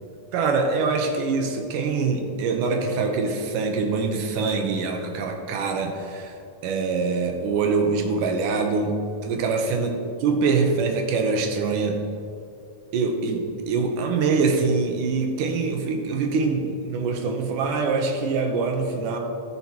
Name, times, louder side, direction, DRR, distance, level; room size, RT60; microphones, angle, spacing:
voice 1, 0.3-6.4 6.6-8.9 9.2-9.9 10.2-12.0 12.9-19.2, right 4 dB, 85° right, 3 dB, 2.5 m, -24 dB
13.5 x 5.8 x 2.9 m, 2.6 s
omnidirectional pair, 3.6 m